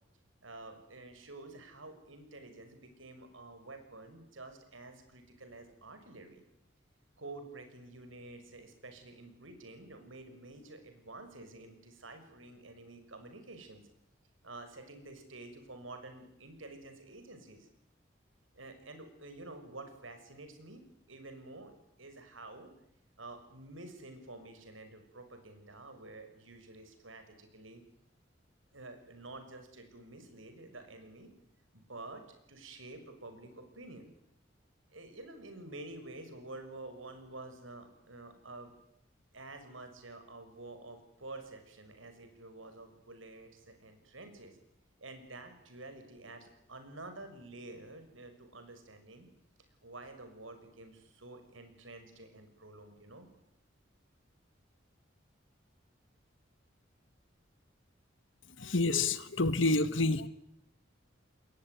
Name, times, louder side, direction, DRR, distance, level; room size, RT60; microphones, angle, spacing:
voice 1, 0.4-6.4 7.2-13.9 14.4-17.7 18.5-22.7 23.2-27.8 28.7-31.3 31.7-34.1 34.9-38.7 39.3-44.6 45.0-49.3 49.8-53.3, right 2 dB, 90° right, 8 dB, 6.2 m, -49 dB
voice 2, 58.6-60.3, left 2 dB, 75° left, 14 dB, 1.7 m, -28 dB
27.5 x 21.5 x 9.4 m, 0.77 s
head